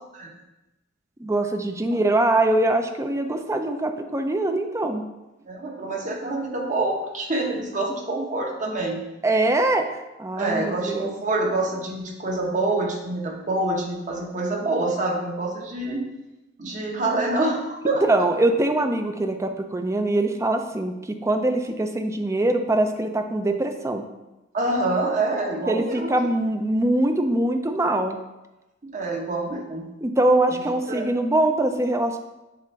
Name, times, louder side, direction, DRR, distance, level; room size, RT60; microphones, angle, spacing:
voice 1, 1.2-5.0 9.2-9.9 10.2-11.1 18.1-24.0 25.7-28.2 30.0-32.2, right 1 dB, 15° right, 6 dB, 0.5 m, -23 dB
voice 2, 5.5-9.0 10.4-16.1 16.6-18.2 24.5-26.1 28.9-29.8 30.5-30.6 30.9-31.1, right 2 dB, 40° right, 0 dB, 1.0 m, -26 dB
7.4 x 2.6 x 5.7 m, 1.0 s
head